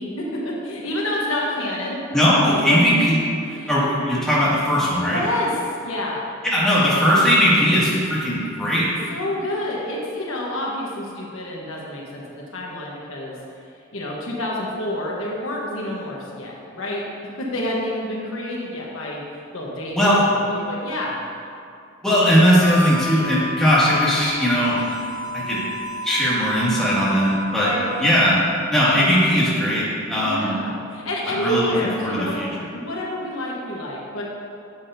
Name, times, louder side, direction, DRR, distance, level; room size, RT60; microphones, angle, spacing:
voice 1, 0.0-2.2 2.6-2.8 3.4-3.7 5.0-5.6 5.8-6.2 9.1-13.3 13.9-17.0 17.4-19.2 19.5-21.2 27.5-27.9 30.2-32.4 32.7-34.2, left 1 dB, 70° left, -3 dB, 1.2 m, -28 dB
voice 2, 2.1-3.2 3.7-5.2 6.4-8.9 19.9-20.2 22.0-25.0 25.3-25.6 26.0-27.7 28.0-28.4 28.7-30.5 31.3-31.7 32.0-32.7, equal, 5° left, -9 dB, 2.1 m, -19 dB
Harmonica, 22.5-28.2, left 1 dB, 85° left, 1.8 m, -32 dB
10.5 x 7.7 x 2.7 m, 2.5 s
head